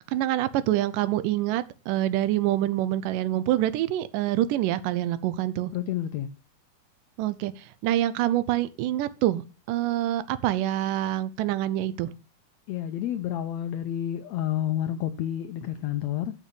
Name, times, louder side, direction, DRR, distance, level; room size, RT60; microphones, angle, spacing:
voice 1, 0.1-5.7 7.2-9.4 9.7-12.1, right 13 dB, 85° right, 2.2 m, -26 dB
voice 2, 5.7-6.3 12.7-16.3, left 11 dB, 80° left, 1.5 m, -29 dB
6.7 x 6.1 x 6.8 m
omnidirectional pair, 3.8 m